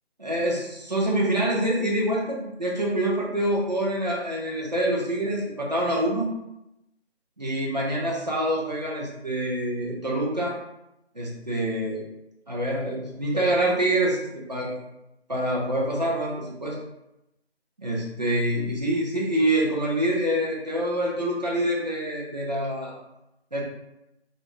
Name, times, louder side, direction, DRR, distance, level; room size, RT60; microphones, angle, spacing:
voice 1, 0.2-6.3 7.4-10.6 11.1-12.1 12.5-14.2 14.5-14.9 15.3-16.8 17.8-23.0 23.5-23.6, right 1 dB, 40° right, -4 dB, 0.5 m, -26 dB
2.5 x 2.1 x 2.9 m, 0.89 s
figure-of-eight pair, 160°, 33 cm